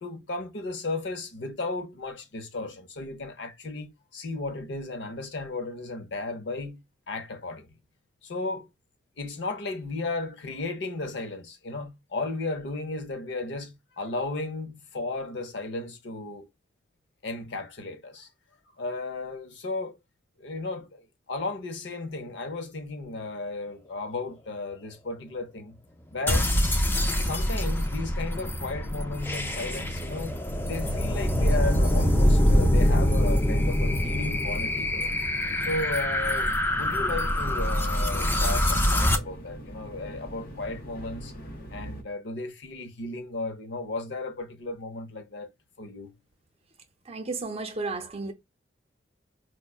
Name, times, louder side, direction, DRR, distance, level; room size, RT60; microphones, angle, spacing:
voice 1, 0.0-6.8 7.1-7.7 8.2-8.7 9.2-16.5 17.2-18.3 18.8-20.0 20.4-25.8 26.1-26.5 27.2-35.1 35.6-41.3 41.7-45.5 45.8-46.1, left 3 dB, 75° left, 0.7 m, -34 dB
sound 1, 26.3-39.2, left 1 dB, 10° left, 0.4 m, -24 dB
sound 2, 36.7-42.0, equal, 55° left, 1.0 m, -42 dB
voice 2, 47.1-48.3, right 3 dB, 35° right, 0.6 m, -33 dB
4.7 x 2.1 x 2.3 m
head